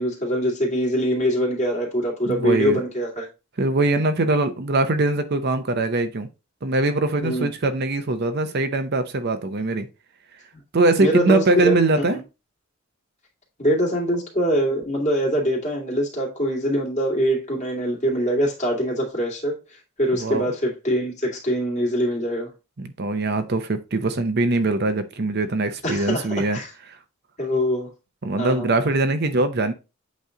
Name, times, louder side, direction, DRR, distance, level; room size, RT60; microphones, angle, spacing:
voice 1, 0.0-3.3 7.2-7.5 11.0-11.7 13.6-19.6 20.0-22.5 25.8-26.7 27.4-27.9 28.4-28.7, equal, 35° left, 2.3 m, -23 dB
voice 2, 2.2-2.8 3.6-6.3 6.6-9.9 10.7-12.2 20.1-20.5 22.8-26.6 28.2-29.7, right 2 dB, 50° right, 0.7 m, -22 dB
8.2 x 3.2 x 3.8 m
head